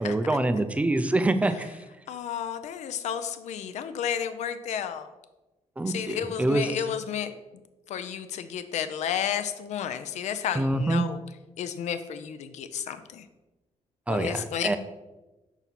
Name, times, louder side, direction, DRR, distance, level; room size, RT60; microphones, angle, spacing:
voice 1, 0.0-1.8 5.8-6.7 10.5-11.0 14.1-14.8, right 2 dB, 10° right, 10 dB, 0.4 m, -25 dB
voice 2, 2.1-5.1 5.9-7.3 7.9-11.2 11.6-13.3 14.1-14.8, left 8 dB, 75° left, 10 dB, 0.5 m, -32 dB
5.9 x 3.9 x 4.2 m, 1.1 s
cardioid pair, 130°, 12 cm